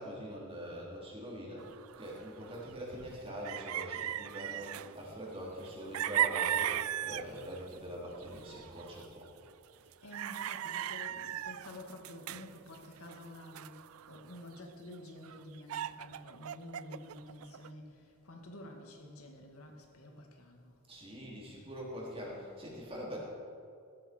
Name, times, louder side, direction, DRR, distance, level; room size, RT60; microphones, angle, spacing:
voice 1, 0.0-1.7 2.0-9.3 20.9-23.2, equal, 25° right, -4 dB, 3.8 m, -43 dB
sound 1, 1.6-2.7 3.1-3.2 3.4-5.2 5.6-7.9 8.1-9.2 9.9-14.6 14.9-15.0 15.2-17.7, right 11 dB, 70° right, 0.4 m, -38 dB
voice 2, 10.0-13.8 14.1-20.8, left 1 dB, 85° left, 1 dB, 2.3 m, -50 dB
16.0 x 14.0 x 4.6 m, 2.4 s
head